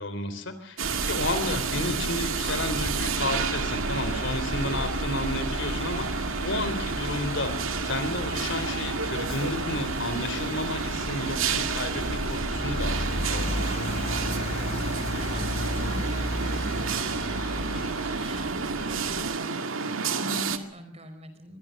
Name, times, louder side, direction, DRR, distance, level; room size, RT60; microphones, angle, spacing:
voice 1, 0.0-14.0, left 2 dB, 60° left, 11 dB, 3.7 m, -32 dB
sound 1, 0.8-19.4, equal, 30° left, 4.6 m, -34 dB
sound 2, 0.8-20.6, right 5 dB, 75° right, 2.0 m, -30 dB
sound 3, 1.3-18.9, left 2 dB, 85° left, 4.3 m, -48 dB
voice 2, 15.2-21.6, equal, 30° right, 9 dB, 4.9 m, -44 dB
24.0 x 23.5 x 6.6 m, 0.62 s
head